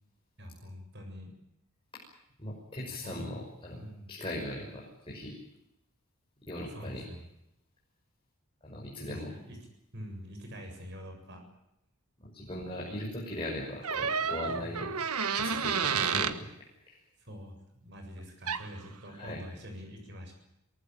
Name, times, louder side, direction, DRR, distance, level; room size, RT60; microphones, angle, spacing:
voice 1, 0.4-1.3 3.0-3.4 3.7-4.1 6.7-7.2 9.1-9.6 9.9-11.4 14.4-14.8 15.8-16.0 17.2-20.3, equal, 50° right, 4 dB, 7.4 m, -45 dB
voice 2, 2.4-3.8 4.1-5.4 6.5-7.1 8.6-9.3 12.2-14.9 15.3-16.5 16.9-17.0 19.1-19.4, left 1 dB, 25° left, -3 dB, 6.1 m, -39 dB
sound 1, 13.8-16.4 18.5-18.7, right 6 dB, 90° right, 1.5 m, -30 dB
23.5 x 19.0 x 9.2 m, 0.82 s
head